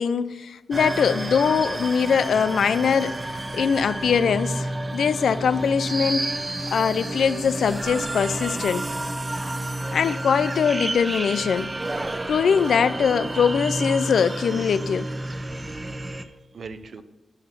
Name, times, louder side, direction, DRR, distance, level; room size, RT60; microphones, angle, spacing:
voice 1, 0.0-6.3 6.7-8.8 9.9-11.7 12.3-15.1, left 6 dB, 85° left, 0.4 m, -22 dB
sound 1, 0.7-16.2, right 1 dB, 25° right, 0.6 m, -30 dB
voice 2, 15.4-17.0, right 4 dB, 60° right, 0.6 m, -44 dB
9.7 x 5.7 x 6.0 m
wide cardioid pair, 135°, 0 cm